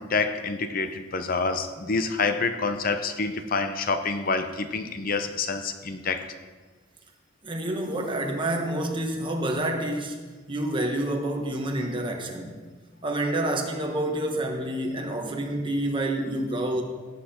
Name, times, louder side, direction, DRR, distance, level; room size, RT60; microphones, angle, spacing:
voice 1, 0.0-6.3, left 4 dB, 45° left, 8 dB, 0.7 m, -27 dB
voice 2, 7.4-10.1 10.5-12.6 13.0-16.8, right 1 dB, 25° right, 2 dB, 1.4 m, -28 dB
17.5 x 8.0 x 4.4 m, 1.4 s
head